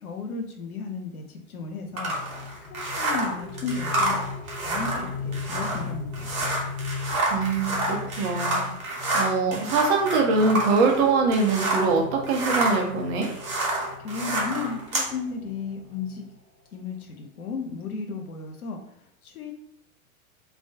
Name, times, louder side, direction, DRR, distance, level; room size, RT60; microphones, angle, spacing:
voice 1, 0.0-2.1 2.6-6.5 14.0-16.2 16.7-19.5, left 4 dB, 85° left, 4 dB, 0.6 m, -34 dB
sound 1, 1.6-16.3, left 4 dB, 35° left, 0.6 m, -38 dB
sound 2, 2.0-11.9 12.2-15.1, right 2 dB, 75° right, 1.0 m, -28 dB
voice 2, 7.3-13.3, right 4 dB, 40° right, 1 dB, 0.7 m, -23 dB
2.3 x 2.1 x 2.6 m, 0.73 s
figure-of-eight pair, 95°, 42 cm